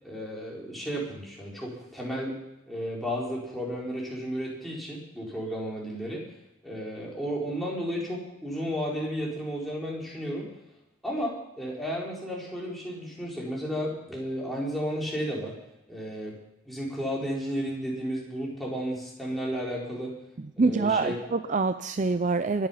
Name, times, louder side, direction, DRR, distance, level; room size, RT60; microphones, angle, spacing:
voice 1, 0.0-2.4 2.7-6.2 6.6-10.5 11.0-15.5 15.9-16.4 16.7-20.1 20.6-21.2, equal, ahead, -5 dB, 4.3 m, -33 dB
voice 2, 20.4-22.7, right 3 dB, 35° right, 10 dB, 0.5 m, -26 dB
22.5 x 9.4 x 5.7 m, 0.93 s
head